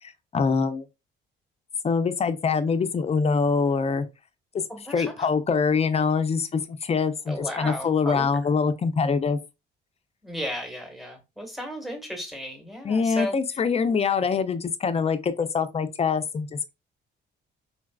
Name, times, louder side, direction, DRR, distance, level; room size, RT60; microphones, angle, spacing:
voice 1, 0.0-0.9 1.8-4.1 4.9-9.4 12.8-16.7, left 5 dB, 30° left, 0.4 m, -24 dB
voice 2, 4.7-5.1 7.3-8.2 10.2-13.3, left 1 dB, ahead, 1.1 m, -34 dB
3.9 x 2.3 x 2.3 m
cardioid pair, 90°, 20 cm